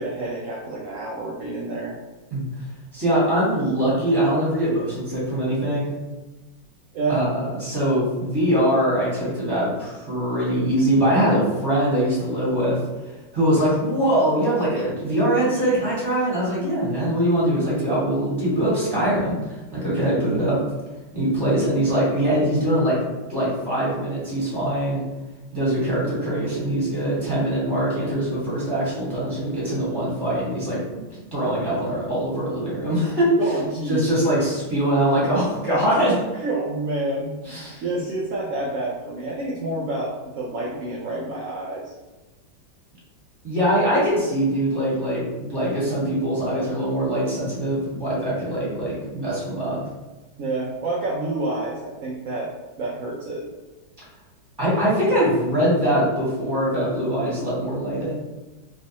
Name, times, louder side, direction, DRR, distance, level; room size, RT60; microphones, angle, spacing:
voice 1, 0.0-2.0 6.9-7.2 33.4-34.1 36.4-41.9 50.4-53.5, right 2 dB, 85° right, -3 dB, 0.7 m, -28 dB
voice 2, 2.9-5.9 7.1-12.8 13.3-20.6 21.1-23.0 23.3-25.0 25.5-31.0 31.3-33.3 33.9-36.2 37.4-37.8 43.4-49.8 54.6-58.1, right 1 dB, 15° right, -8 dB, 1.1 m, -22 dB
3.3 x 3.1 x 2.8 m, 1.1 s
omnidirectional pair, 2.1 m